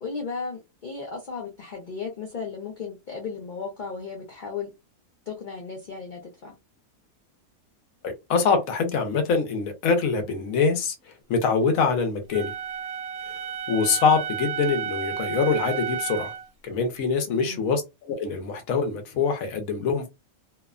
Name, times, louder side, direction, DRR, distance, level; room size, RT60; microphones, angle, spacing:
voice 1, 0.0-4.7 5.3-6.5 17.3-17.7, left 5 dB, 50° left, 0.6 m, -35 dB
voice 2, 8.0-12.5 13.3-13.4 13.7-16.3 16.6-20.1, left 5 dB, 80° left, 1.1 m, -24 dB
Wind instrument woodwind instrument, 12.3-16.5, right 7 dB, 70° right, 1.0 m, -32 dB
2.8 x 2.1 x 2.3 m
omnidirectional pair, 1.5 m